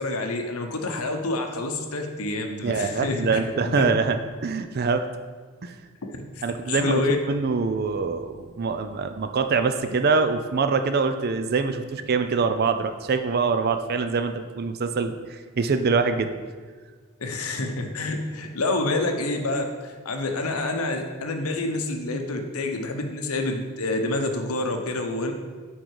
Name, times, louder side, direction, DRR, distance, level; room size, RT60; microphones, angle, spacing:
voice 1, 0.0-3.7 6.7-7.2 17.2-25.3, left 2 dB, 85° left, 4 dB, 0.9 m, -28 dB
voice 2, 2.6-4.2 4.4-5.1 5.6-5.7 6.4-7.0 7.3-16.3, right 4 dB, 45° right, 8 dB, 0.4 m, -24 dB
9.1 x 3.8 x 4.7 m, 1.5 s
head